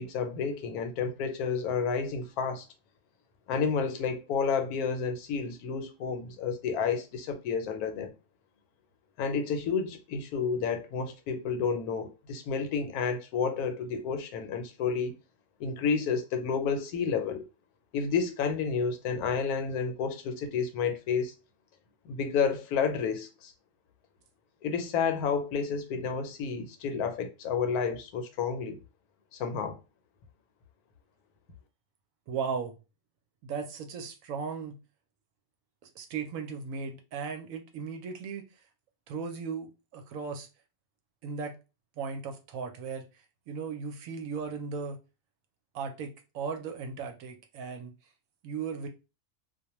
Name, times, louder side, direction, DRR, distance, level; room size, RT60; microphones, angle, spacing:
voice 1, 0.0-2.6 3.5-8.1 9.2-15.1 15.6-17.4 17.9-21.3 22.0-23.5 24.6-28.8 29.3-29.8, left 6 dB, 80° left, 1.1 m, -30 dB
voice 2, 32.3-32.8 33.4-34.8 36.0-38.4 39.1-40.5 41.2-41.6 42.0-43.1 43.5-45.0 45.7-47.9 48.4-48.9, right 5 dB, 70° right, 0.9 m, -36 dB
2.4 x 2.1 x 2.9 m
omnidirectional pair, 1.6 m